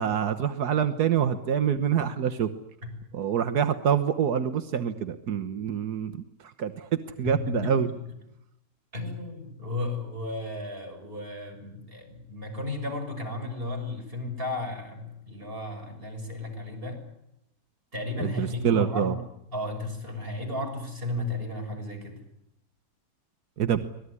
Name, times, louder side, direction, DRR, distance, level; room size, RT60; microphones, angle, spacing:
voice 1, 0.0-2.5 3.1-6.1 6.4-6.9 7.2-7.9 18.2-19.1 23.6-23.8, right 8 dB, 85° right, 9 dB, 1.7 m, -26 dB
voice 2, 7.2-8.1 8.9-17.0 17.9-19.2 19.5-22.2, left 2 dB, 35° right, 4 dB, 6.7 m, -34 dB
25.0 x 19.5 x 9.8 m, 0.82 s
omnidirectional pair, 1.6 m